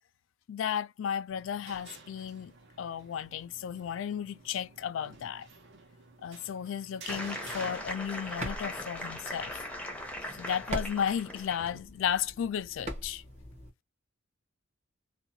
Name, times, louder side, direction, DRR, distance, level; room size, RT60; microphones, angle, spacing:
voice 1, 0.5-2.5 2.8-5.5 6.2-9.6 10.3-13.2, left 8 dB, 65° left, 0.3 m, -34 dB
sound 1, 1.3-8.6, right 3 dB, 60° right, 0.9 m, -51 dB
sound 2, 7.1-11.8, left 1 dB, 5° left, 0.6 m, -39 dB
sound 3, 7.8-13.7, equal, 35° right, 1.0 m, -42 dB
2.7 x 2.2 x 2.7 m
head